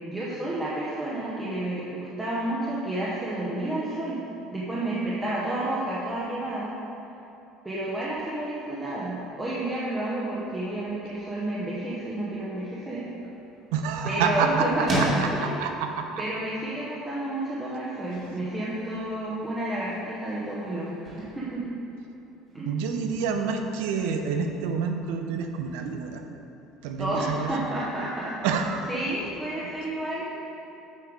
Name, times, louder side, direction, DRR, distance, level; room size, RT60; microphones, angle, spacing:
voice 1, 0.1-4.2 4.5-6.8 7.6-13.1 14.0-15.1 15.3-15.6 16.2-21.6 22.5-22.8 27.0-28.3 28.9-30.3, right 1 dB, 10° right, -7 dB, 0.9 m, -30 dB
sound 1, 12.8-22.6, right 1 dB, 30° right, 2.0 m, -37 dB
voice 2, 13.7-16.1 22.6-26.2 26.8-27.5 28.4-28.8 29.6-29.7, right 5 dB, 90° right, 5 dB, 0.8 m, -28 dB
8.5 x 6.7 x 4.7 m, 2.9 s
cardioid pair, 165°, 0 cm